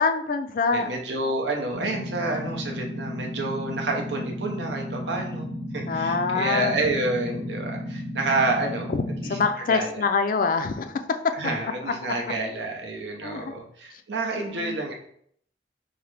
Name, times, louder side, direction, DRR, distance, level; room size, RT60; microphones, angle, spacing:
voice 1, 0.0-0.9 5.9-6.8 8.9-10.9 11.6-11.7 12.0-12.1 13.2-13.5 14.4-14.8, left 4 dB, 50° left, 8 dB, 0.4 m, -25 dB
voice 2, 0.7-8.9 9.2-9.4 9.7-10.0 11.3-14.9, right 2 dB, 80° right, 1 dB, 0.8 m, -29 dB
sound 1, 1.7-9.4, equal, 50° right, 1.6 m, -34 dB
5.6 x 2.1 x 3.3 m, 0.66 s
head